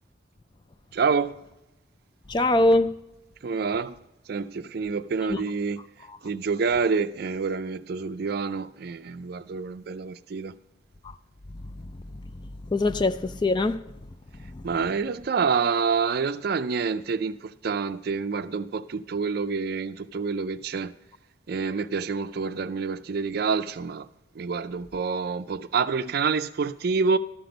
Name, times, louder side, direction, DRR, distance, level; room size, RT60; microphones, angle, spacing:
voice 1, 0.9-1.4 3.4-4.0 4.3-5.9 6.2-10.5 14.6-20.9 21.5-24.1 24.4-27.2, right 5 dB, 55° right, 0.4 m, -27 dB
voice 2, 2.3-2.9 5.3-5.4 12.1-12.2 12.7-13.8 14.5-14.6, left 2 dB, 25° left, 0.3 m, -22 dB
12.5 x 6.0 x 5.1 m
head